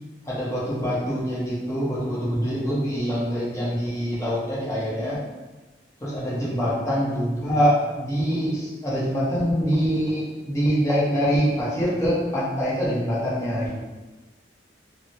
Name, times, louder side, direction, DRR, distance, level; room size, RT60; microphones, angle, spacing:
voice 1, 0.3-5.2 6.0-13.7, equal, 15° left, -8 dB, 0.8 m, -24 dB
3.2 x 2.1 x 2.8 m, 1.2 s
head